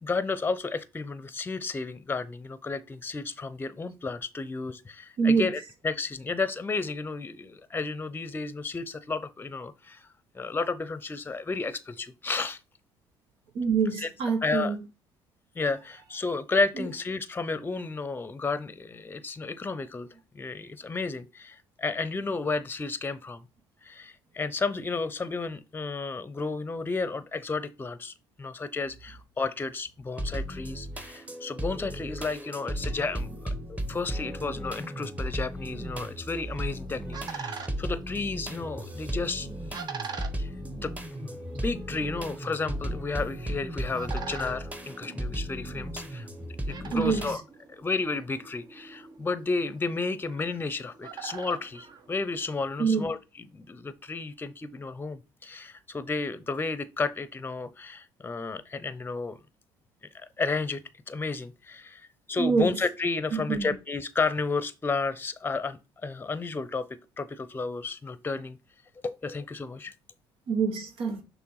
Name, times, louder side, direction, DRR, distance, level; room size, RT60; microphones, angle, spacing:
voice 1, 0.0-10.1 10.3-12.6 14.0-14.1 14.4-14.8 15.5-20.1 20.3-23.4 23.8-33.3 33.7-39.5 40.4-40.5 40.8-47.4 47.7-59.4 60.1-60.8 61.1-68.6 69.0-69.9, left 4 dB, 20° left, 0.7 m, -32 dB
voice 2, 13.5-14.8 16.8-16.9 46.9-47.2 52.8-53.0 62.4-62.8 63.3-63.7 70.5-71.2, right 5 dB, 70° right, 1.2 m, -25 dB
sound 1, 30.2-47.4, right 1 dB, 15° right, 1.2 m, -35 dB
sound 2, 36.5-52.7, right 6 dB, 45° right, 1.1 m, -45 dB
6.0 x 3.4 x 4.7 m
supercardioid pair, 75°, 10 cm